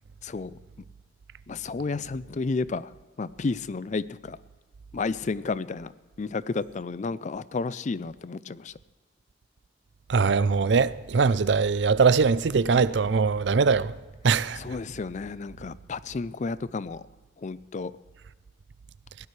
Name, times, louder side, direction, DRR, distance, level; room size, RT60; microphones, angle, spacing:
voice 1, 0.2-0.6 1.5-4.4 4.9-5.9 6.2-8.8 14.5-17.0 17.4-17.9, left 4 dB, 40° left, 0.4 m, -32 dB
voice 2, 10.1-13.9 14.2-14.6, right 5 dB, 70° right, 0.5 m, -22 dB
22.0 x 16.5 x 3.3 m
head